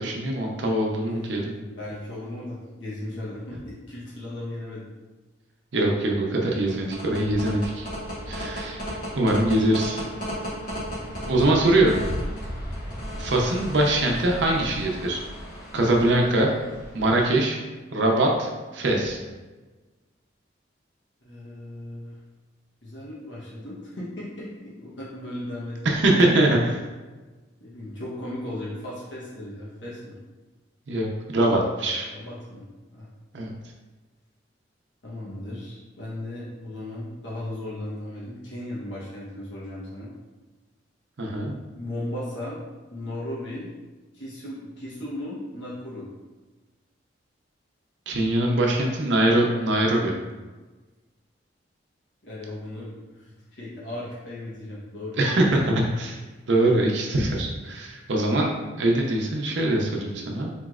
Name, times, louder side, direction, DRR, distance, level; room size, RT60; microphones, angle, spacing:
voice 1, 0.0-1.5 5.7-7.9 8.3-8.9 9.2-10.0 11.3-11.9 13.2-15.2 15.7-16.5 16.9-17.6 17.9-19.2 25.8-26.8 30.9-32.1 33.3-33.5 41.2-41.6 48.1-50.1 55.2-56.2 56.5-60.5, right 1 dB, 75° right, 0 dB, 0.6 m, -23 dB
voice 2, 1.1-4.8 21.2-22.1 22.8-26.0 27.6-30.2 32.1-32.6 32.9-33.1 35.0-40.1 41.8-42.6 42.9-43.7 44.1-46.1 52.2-55.2, left 1 dB, 75° left, -7 dB, 1.0 m, -36 dB
sound 1, 6.5-17.3, equal, 55° left, 1.0 m, -34 dB
4.4 x 3.1 x 2.4 m, 1.2 s
head